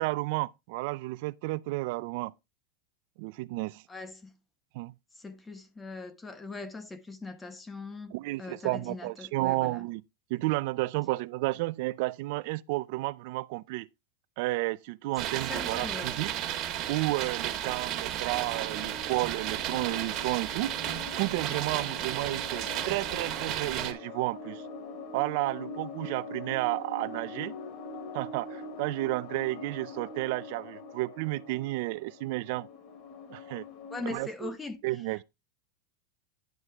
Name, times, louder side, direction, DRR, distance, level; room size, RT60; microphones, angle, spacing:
voice 1, 0.0-2.3 3.2-3.8 4.7-4.9 8.1-10.0 10.3-13.9 14.4-16.3 16.9-20.7 21.2-24.6 25.1-27.5 28.1-32.7 33.3-33.6 34.1-34.5 34.8-35.2, right 21 dB, 65° right, 0.4 m, -32 dB
voice 2, 3.9-4.4 5.1-8.1 8.4-9.8 15.5-16.2 33.9-34.8, left 3 dB, 15° left, 1.1 m, -40 dB
sound 1, 15.2-23.9, right 11 dB, 40° right, 1.7 m, -33 dB
sound 2, 15.8-17.7 18.1-34.1, left 3 dB, 50° left, 2.5 m, -44 dB
10.5 x 6.3 x 3.5 m
supercardioid pair, 130°, 0 cm